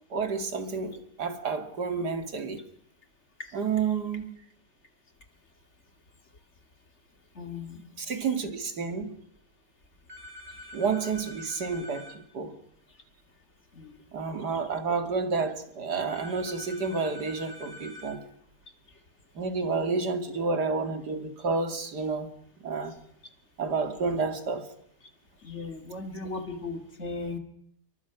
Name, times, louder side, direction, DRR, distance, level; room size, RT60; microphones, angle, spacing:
voice 1, 0.1-2.6 3.5-4.3 8.0-9.1 10.7-12.5 14.1-18.2 19.3-22.3 22.6-22.9 23.6-24.7, right 4 dB, 85° right, 7 dB, 2.9 m, -30 dB
voice 2, 7.4-7.8 13.7-14.0 25.4-27.4, left 3 dB, 45° left, 6 dB, 2.5 m, -37 dB
sound 1, 10.1-12.2 16.1-18.2, left 2 dB, 40° right, 5.2 m, -45 dB
28.5 x 23.5 x 6.1 m, 0.71 s
omnidirectional pair, 1.7 m